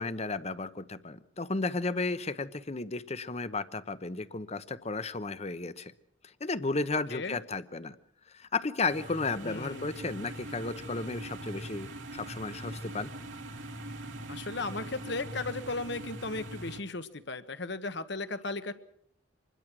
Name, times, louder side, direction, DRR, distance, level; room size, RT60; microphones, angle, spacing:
voice 1, 0.0-5.9 6.4-8.0 8.3-11.9 12.1-13.1, left 3 dB, 35° left, 14 dB, 0.9 m, -33 dB
sound 1, 8.9-16.8, right 1 dB, 75° right, 2.3 m, -42 dB
voice 2, 9.4-9.9 14.3-18.7, left 3 dB, 60° left, 11 dB, 1.4 m, -36 dB
25.5 x 21.0 x 6.2 m, 0.66 s
head